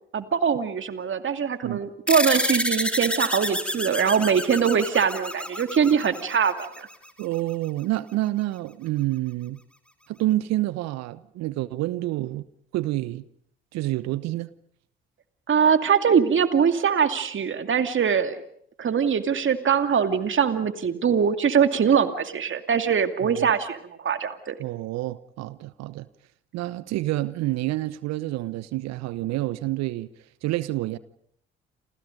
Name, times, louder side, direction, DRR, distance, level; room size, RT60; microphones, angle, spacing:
voice 1, 0.1-6.9 15.5-18.4 18.8-24.6, right 7 dB, 45° right, 2.4 m, -22 dB
sound 1, 2.1-6.9, equal, 5° left, 3.4 m, -28 dB
voice 2, 7.2-9.6 10.1-12.5 12.7-13.2 13.7-14.5 23.2-23.5 24.6-26.1 26.5-30.1 30.4-31.0, right 16 dB, 65° right, 1.0 m, -28 dB
29.0 x 27.0 x 5.3 m
hypercardioid pair, 50°, 29 cm